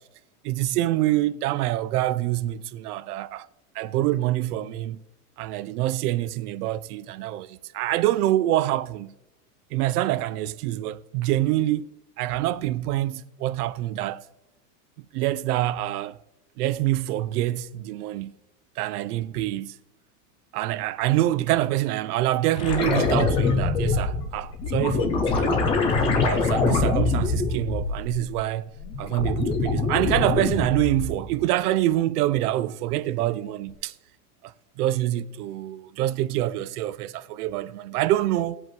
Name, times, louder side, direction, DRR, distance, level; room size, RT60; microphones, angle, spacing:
voice 1, 0.4-3.5 3.7-5.0 5.4-9.1 9.7-11.9 12.2-14.2 15.1-16.2 16.6-18.4 18.8-19.8 20.5-25.6 26.2-28.7 29.0-33.9 34.8-38.6, right 14 dB, 75° right, 0.7 m, -26 dB
sound 1, 22.6-28.4 28.7-31.3 33.7-33.8, left 4 dB, 15° left, 0.3 m, -24 dB
18.5 x 7.7 x 3.1 m
supercardioid pair, 165°, 46 cm